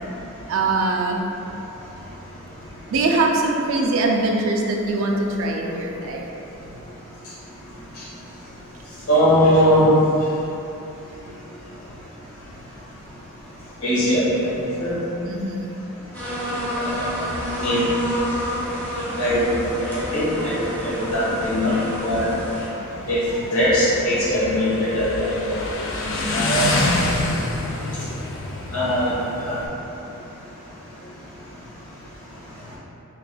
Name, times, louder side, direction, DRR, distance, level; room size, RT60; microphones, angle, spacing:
voice 1, 0.5-1.2 2.9-6.3 15.2-15.7, right 2 dB, 65° right, 0 dB, 0.4 m, -22 dB
voice 2, 9.1-9.9 13.8-15.0 16.8-17.3 17.6-18.1 19.2-19.5 19.9-21.8 22.0-22.3 23.1-23.2 23.5-25.6 26.1-26.8 28.7-29.6, equal, 80° left, -9 dB, 1.2 m, -21 dB
sound 1, 16.1-22.7, equal, 10° left, 0.7 m, -29 dB
Motorcycle, 16.7-29.7, left 2 dB, 60° left, 0.4 m, -29 dB
3.5 x 3.3 x 2.2 m, 2.9 s
head